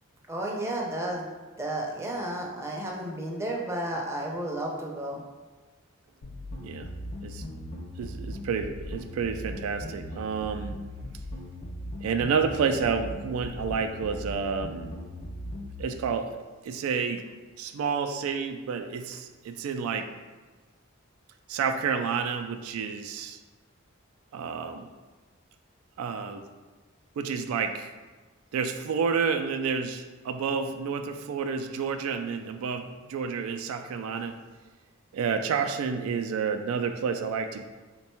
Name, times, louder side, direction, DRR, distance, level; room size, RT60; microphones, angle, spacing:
voice 1, 0.3-1.3 1.6-5.2, right 1 dB, 15° right, -2 dB, 0.5 m, -32 dB
sound 1, 6.2-15.8, left 1 dB, 45° left, 0.4 m, -39 dB
voice 2, 8.0-10.8 12.0-14.9 15.8-16.4 16.6-17.2 17.6-20.1 21.5-23.4 24.3-24.9 26.0-26.4 27.2-27.9 28.5-34.4 35.1-37.6, right 6 dB, 90° right, 9 dB, 0.3 m, -30 dB
3.4 x 2.2 x 4.3 m, 1.3 s
head